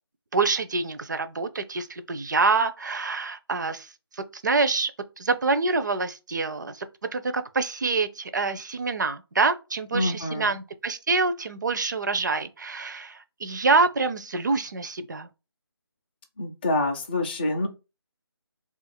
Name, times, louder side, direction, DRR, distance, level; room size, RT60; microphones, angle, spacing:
voice 1, 0.3-3.9 4.2-4.9 5.2-15.3, right 4 dB, 45° right, 0.4 m, -26 dB
voice 2, 9.9-10.6 16.4-17.7, left 2 dB, 20° left, 0.4 m, -27 dB
3.6 x 2.5 x 4.2 m
figure-of-eight pair, 160°, 14 cm